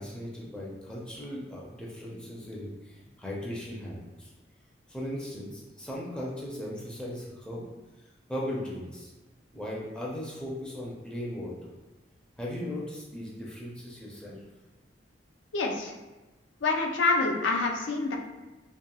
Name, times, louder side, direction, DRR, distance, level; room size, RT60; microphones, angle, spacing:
voice 1, 0.0-4.3 4.9-7.7 8.3-9.1 9.5-11.7 12.4-14.4, left 1 dB, 5° left, -5 dB, 0.4 m, -37 dB
voice 2, 15.5-15.9 16.6-18.2, left 3 dB, 85° left, 2 dB, 0.4 m, -26 dB
2.9 x 2.6 x 2.3 m, 1.1 s
head